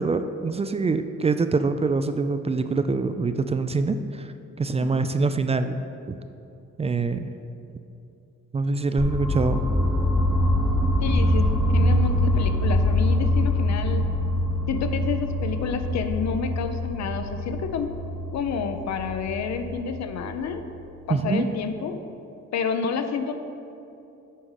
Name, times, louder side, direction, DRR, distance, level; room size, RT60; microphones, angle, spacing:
voice 1, 0.0-5.8 6.1-6.2 6.8-7.3 8.5-9.6 21.1-21.5, right 3 dB, 20° right, 9 dB, 0.3 m, -25 dB
sound 1, 9.0-20.9, left 1 dB, ahead, 0.9 m, -24 dB
voice 2, 11.0-14.1 14.7-17.9 18.3-20.6 21.1-22.0 22.5-23.3, left 5 dB, 60° left, 8 dB, 0.7 m, -29 dB
8.4 x 4.8 x 5.6 m, 2.7 s
cardioid pair, 90°, 30 cm